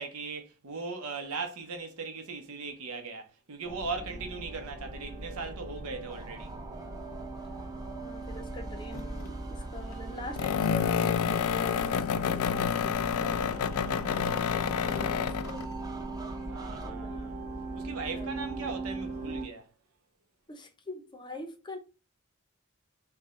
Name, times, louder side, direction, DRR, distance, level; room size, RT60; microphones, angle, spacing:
voice 1, 0.0-6.5 13.8-14.3 16.5-17.4 17.7-19.7, right 4 dB, 80° right, 0.9 m, -39 dB
sound 1, 3.6-19.4, right 2 dB, 35° right, 0.9 m, -39 dB
sound 2, 6.1-16.9, right 3 dB, 15° right, 0.4 m, -49 dB
voice 2, 8.0-15.7 16.8-17.4 18.0-18.4 20.5-21.8, left 1 dB, 20° left, 0.7 m, -44 dB
sound 3, 8.9-9.3 10.4-15.7, left 7 dB, 75° left, 0.3 m, -29 dB
4.7 x 2.3 x 3.7 m
head